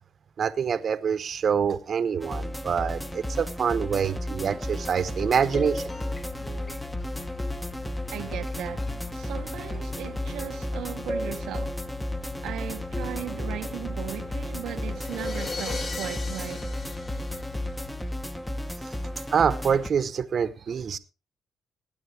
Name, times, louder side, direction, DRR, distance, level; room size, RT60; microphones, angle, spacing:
voice 1, 0.4-5.8 19.3-21.0, right 7 dB, 50° right, 1.0 m, -26 dB
sound 1, 2.2-19.9, left 1 dB, 10° left, 1.0 m, -33 dB
sound 2, 4.9-18.5, left 6 dB, 35° left, 4.5 m, -41 dB
voice 2, 8.1-11.8 12.4-16.6, right 11 dB, 80° right, 0.8 m, -37 dB
sound 3, 14.8-18.1, left 3 dB, 55° left, 3.2 m, -37 dB
21.0 x 9.1 x 3.3 m
cardioid pair, 90°, 0 cm